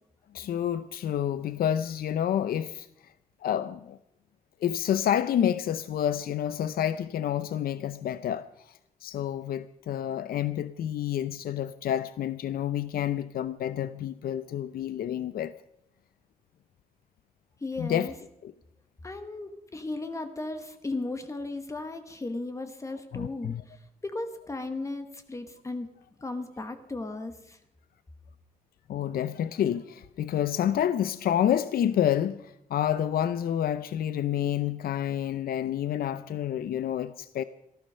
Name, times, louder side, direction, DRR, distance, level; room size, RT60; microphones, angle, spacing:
voice 1, 0.3-2.9 3.4-4.0 4.6-15.6 17.8-18.1 18.4-18.5 23.1-23.6 28.9-37.4, left 10 dB, 85° left, 0.6 m, -29 dB
voice 2, 17.6-18.1 19.0-25.9 26.2-27.6, left 2 dB, 20° left, 1.3 m, -36 dB
18.0 x 14.5 x 5.5 m
wide cardioid pair, 165°, 15 cm